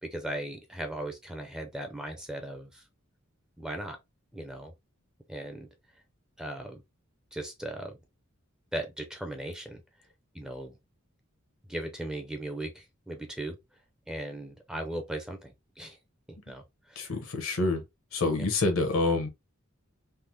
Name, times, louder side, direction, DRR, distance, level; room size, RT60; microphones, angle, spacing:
voice 1, 0.0-2.8 3.6-4.0 4.3-4.7 5.3-5.7 6.4-6.8 7.3-8.0 8.7-9.8 10.3-10.8 11.7-13.6 14.1-16.0 16.3-17.2 18.4-18.5, right 1 dB, 5° right, 0.5 m, -38 dB
voice 2, 17.0-17.8 18.1-19.3, left 3 dB, 75° left, 0.9 m, -27 dB
3.4 x 2.0 x 2.7 m
head